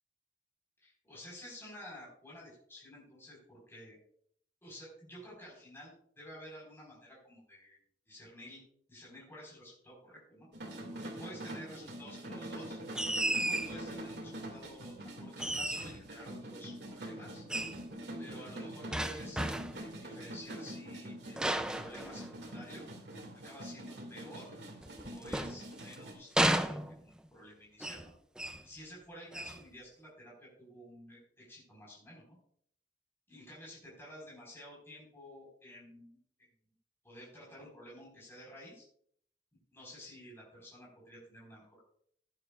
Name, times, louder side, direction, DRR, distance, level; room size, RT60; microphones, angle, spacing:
voice 1, 0.8-4.0 4.6-7.8 8.1-8.6 8.9-10.5 10.9-12.8 13.2-17.4 18.2-19.4 19.8-22.9 23.4-24.5 25.1-28.1 28.6-32.4 33.3-36.5 37.0-38.8 39.7-41.8, equal, 15° left, -5 dB, 4.7 m, -51 dB
sound 1, 10.5-26.1, right 1 dB, 70° right, 2.3 m, -45 dB
sound 2, 12.9-13.8 15.4-16.1 17.5-17.8 18.9-19.9 21.4-22.6 24.8-26.0 26.4-27.3 27.8-28.1 28.4-28.7 29.3-29.6, right 1 dB, 5° right, 0.4 m, -33 dB
15.5 x 9.6 x 2.5 m, 0.64 s
head